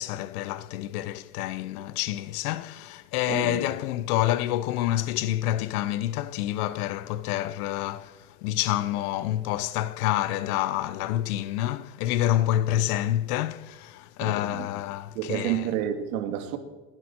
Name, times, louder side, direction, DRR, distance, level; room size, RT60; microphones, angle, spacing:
voice 1, 0.0-15.7, left 13 dB, 75° left, 0.9 m, -28 dB
voice 2, 3.3-3.7 14.2-14.7 15.2-16.6, right 10 dB, 70° right, 2.3 m, -30 dB
29.0 x 11.0 x 4.4 m
cardioid pair, 160°, 45 cm